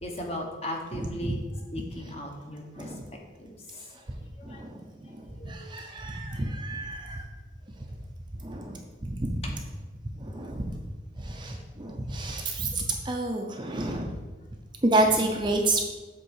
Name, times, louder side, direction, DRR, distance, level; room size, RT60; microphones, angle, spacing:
voice 1, 0.0-1.4 1.7-4.6 5.0-5.8 14.7-14.8, left 1 dB, 30° left, 1 dB, 1.1 m, -39 dB
voice 2, 0.9-1.4 2.8-3.1 3.7-7.3 7.8-7.9 8.3-9.4 10.2-10.8 11.2-14.1 14.8-15.8, right 2 dB, 25° right, 2 dB, 0.6 m, -30 dB
7.8 x 3.7 x 6.4 m, 1.3 s
head